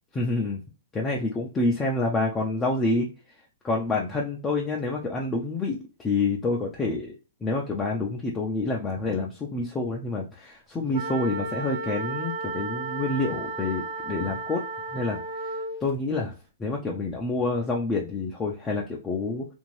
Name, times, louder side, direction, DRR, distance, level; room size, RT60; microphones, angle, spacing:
voice 1, 0.1-0.6 0.9-3.1 3.6-7.1 7.4-14.6 14.9-16.3 16.6-19.4, left 3 dB, 15° left, -1 dB, 0.4 m, -28 dB
sound 1, 10.9-15.8, right 3 dB, 40° right, 0.6 m, -33 dB
2.6 x 2.6 x 3.1 m, 0.35 s
hypercardioid pair, 150°, 0 cm